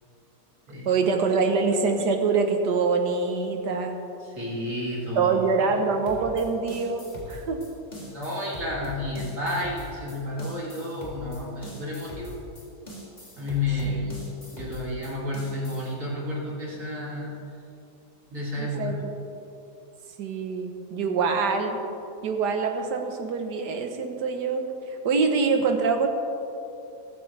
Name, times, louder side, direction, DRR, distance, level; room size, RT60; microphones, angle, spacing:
voice 1, 0.9-3.9 5.2-7.7 13.9-14.2 18.6-19.1 20.2-21.8 22.2-26.1, right 4 dB, 85° right, 5 dB, 1.7 m, -25 dB
voice 2, 4.2-5.3 8.0-12.4 13.4-14.2 14.5-17.3 18.3-18.9, left 1 dB, 50° right, -5 dB, 3.2 m, -31 dB
sound 1, 6.1-15.9, left 1 dB, 25° left, 2.2 m, -41 dB
15.0 x 13.5 x 3.3 m, 2.8 s
omnidirectional pair, 1.7 m